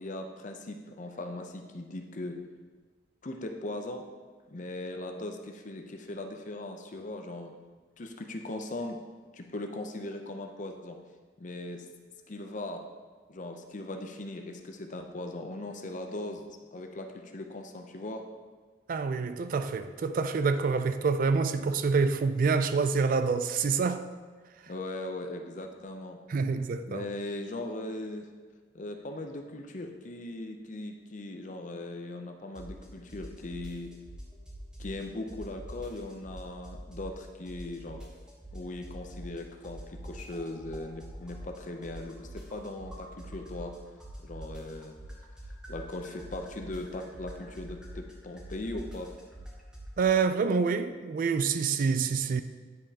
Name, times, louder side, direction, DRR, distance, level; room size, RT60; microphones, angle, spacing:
voice 1, 0.0-2.4 3.2-4.0 4.5-7.5 8.0-9.0 9.3-11.0 11.4-11.9 12.3-12.8 13.3-16.4 16.7-18.2 24.7-26.2 26.5-28.3 28.7-33.9 34.8-38.1 38.5-43.7 44.2-45.0 45.7-49.1, left 2 dB, 45° left, 0.6 m, -39 dB
voice 2, 18.9-24.1 26.3-27.1 50.0-52.4, right 5 dB, 50° right, 0.3 m, -27 dB
sound 1, 32.5-32.8 33.1-35.0 35.3-37.2 37.5-39.4 39.6-43.7 44.0-49.9, right 1 dB, 5° right, 1.0 m, -44 dB
9.6 x 5.1 x 2.9 m
head